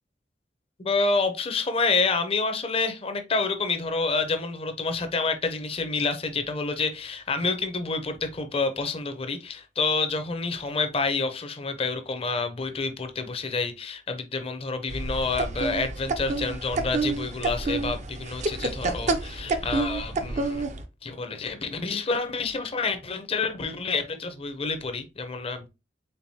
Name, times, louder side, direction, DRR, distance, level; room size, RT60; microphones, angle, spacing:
voice 1, 0.8-20.7 21.0-25.7, left 4 dB, 35° left, 0.6 m, -28 dB
sound 1, 14.9-20.8, right 3 dB, 40° right, 0.5 m, -29 dB
4.5 x 3.8 x 2.7 m
head